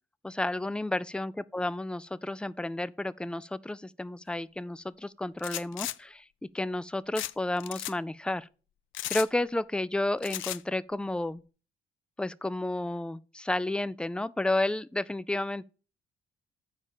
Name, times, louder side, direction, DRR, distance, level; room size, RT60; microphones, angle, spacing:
voice 1, 0.2-6.3 6.5-8.5 9.1-11.4 12.2-15.6, left 2 dB, 5° left, 0.4 m, -31 dB
sound 1, 5.4-5.9 7.1-7.3 7.6-7.9 8.9-9.3 10.2-10.6, left 14 dB, 80° left, 0.5 m, -35 dB
6.4 x 4.8 x 6.9 m
cardioid pair, 90°, 20 cm